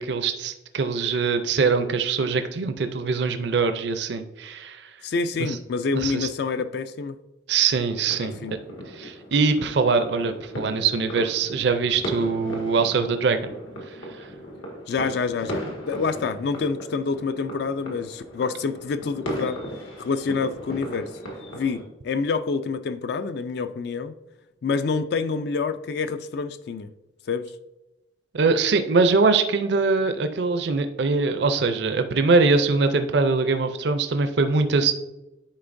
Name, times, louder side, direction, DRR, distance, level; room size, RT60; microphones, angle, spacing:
voice 1, 0.0-4.9 5.4-5.6 5.9-6.3 7.5-8.3 8.9-13.4 28.3-34.9, right 4 dB, 60° right, 9 dB, 0.5 m, -22 dB
voice 2, 5.0-7.2 8.2-8.6 14.9-19.6 20.0-21.1 21.5-24.2 24.6-26.9 27.3-27.5, left 4 dB, 55° left, 11 dB, 0.3 m, -27 dB
sound 1, 7.8-21.8, equal, 85° left, 1.7 m, -37 dB
10.5 x 4.4 x 2.6 m, 0.97 s
head